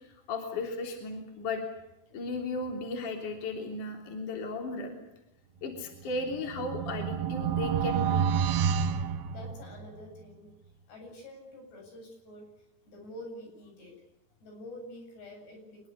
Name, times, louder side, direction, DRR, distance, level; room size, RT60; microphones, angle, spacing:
voice 1, 0.0-1.6 2.1-5.0 5.6-8.3, left 2 dB, 50° left, 3 dB, 4.7 m, -35 dB
sound 1, 6.0-10.0, right 7 dB, 70° right, 3.0 m, -29 dB
voice 2, 9.2-10.5 10.9-12.4 12.9-14.0 14.4-15.9, left 1 dB, 80° left, 3 dB, 10.0 m, -47 dB
25.5 x 22.0 x 8.2 m, 0.90 s
omnidirectional pair, 4.9 m